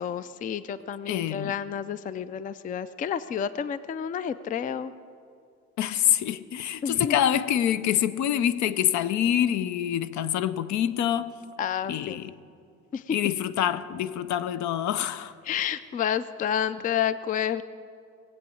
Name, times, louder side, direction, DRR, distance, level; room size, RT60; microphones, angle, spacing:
voice 1, 0.0-4.9 6.8-7.2 11.6-12.2 12.9-13.2 15.4-17.6, left 8 dB, 30° left, 0.4 m, -30 dB
voice 2, 1.1-1.5 5.8-11.3 11.9-12.3 13.1-15.3, left 10 dB, 70° left, 0.6 m, -26 dB
19.5 x 8.0 x 8.4 m
cardioid pair, 145°, 29 cm